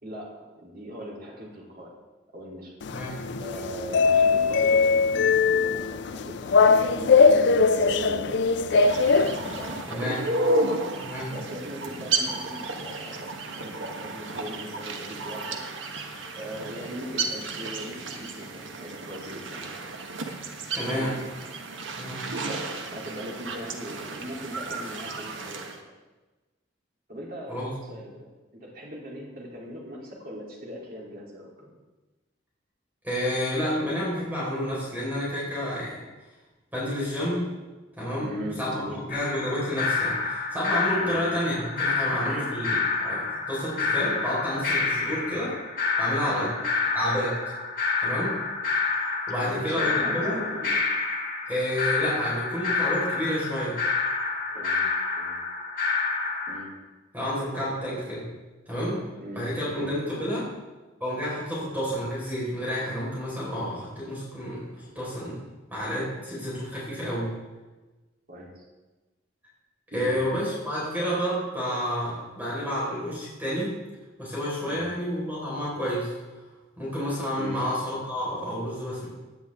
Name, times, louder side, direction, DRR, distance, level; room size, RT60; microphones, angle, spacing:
voice 1, 0.0-1.9 2.3-2.7 3.4-8.4 8.7-9.0 9.4-10.0 11.3-15.6 16.3-19.7 20.9-21.2 22.4-25.8 27.1-28.3 28.5-31.7 38.2-39.0 40.9-41.2 42.3-42.5 42.7-42.9 46.3-46.5 49.4-50.8 54.5-54.8 55.2-55.4 56.5-56.7 59.2-59.9 68.3-68.5 69.9-70.2 74.6-74.9 77.4-77.6, equal, 50° right, -3 dB, 3.4 m, -39 dB
sound 1, 2.8-9.8, left 4 dB, 65° left, 0.5 m, -21 dB
sound 2, 8.7-25.8, right 2 dB, 85° right, 1.3 m, -32 dB
voice 2, 9.9-10.2 11.0-11.3 20.7-21.1 22.0-22.2 27.5-27.7 33.0-36.0 36.7-37.5 38.0-38.3 38.6-43.2 43.5-45.5 46.0-46.5 46.9-47.4 48.0-48.4 49.3-50.4 51.5-53.8 57.1-58.2 58.7-59.0 59.3-60.5 61.0-65.4 65.7-67.3 69.9-73.8 74.2-76.1 76.8-79.1, equal, 10° right, -8 dB, 4.8 m, -30 dB
sound 3, 39.1-56.6, left 4 dB, 50° left, 2.6 m, -28 dB
17.5 x 9.7 x 3.7 m, 1.2 s
head